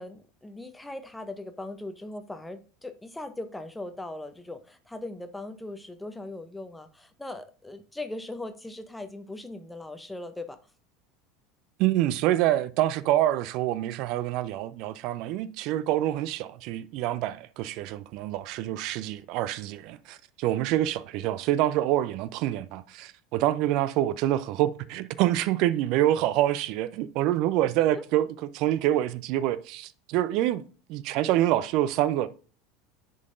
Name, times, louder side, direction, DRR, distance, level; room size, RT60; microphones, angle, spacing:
voice 1, 0.0-10.6 27.7-28.0, left 2 dB, 10° left, 0.6 m, -39 dB
voice 2, 11.8-28.3 28.5-30.6 30.9-32.3, right 13 dB, 55° right, 0.4 m, -26 dB
10.5 x 3.9 x 2.5 m
figure-of-eight pair, 75°, 0 cm